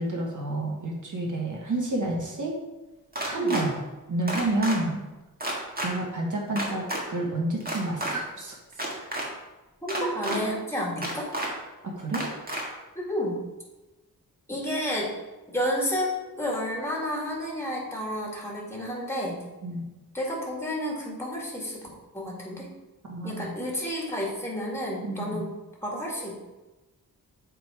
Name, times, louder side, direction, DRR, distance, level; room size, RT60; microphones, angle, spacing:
voice 1, 0.0-2.5 3.2-3.8 4.1-5.0 5.8-8.6 9.0-9.1 9.9-10.4 11.8-12.3 19.6-19.9 23.1-23.5 25.0-25.5, right 2 dB, 55° right, -1 dB, 1.6 m, -29 dB
sound 1, 3.1-3.6 4.3-4.8 5.4-5.9 6.6-7.0 7.6-8.1 8.7-9.3 9.9-10.4 11.0-11.5 12.1-12.6, right 1 dB, 25° right, 1.6 m, -30 dB
voice 2, 9.8-11.3 13.0-13.3 14.5-15.1 15.5-19.4 20.1-21.9 22.1-22.7 23.2-25.5 25.8-26.4, equal, 5° left, -3 dB, 1.9 m, -31 dB
7.6 x 3.6 x 4.8 m, 1.1 s
wide cardioid pair, 95°, 37 cm